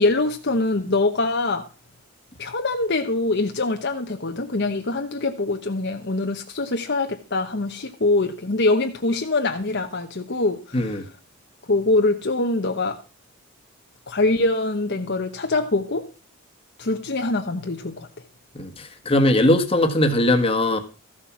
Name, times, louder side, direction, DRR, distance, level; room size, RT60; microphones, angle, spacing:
voice 1, 0.0-1.6 2.4-10.9 11.7-13.0 14.1-16.1 16.8-18.1, left 2 dB, 50° left, 1.0 m, -23 dB
voice 2, 10.7-11.0 18.5-20.8, left 1 dB, 25° left, 1.5 m, -20 dB
14.0 x 7.2 x 6.0 m
head